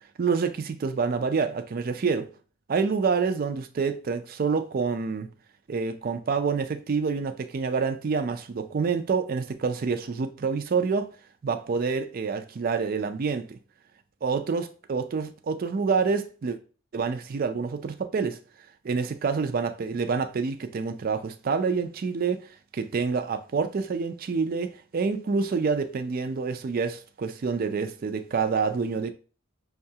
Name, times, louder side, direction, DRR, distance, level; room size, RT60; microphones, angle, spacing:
voice 1, 0.2-2.3 2.7-5.3 5.7-11.1 11.4-13.6 14.2-16.6 16.9-18.4 18.8-29.1, right 5 dB, 45° right, 0.4 m, -27 dB
5.4 x 2.3 x 2.7 m
head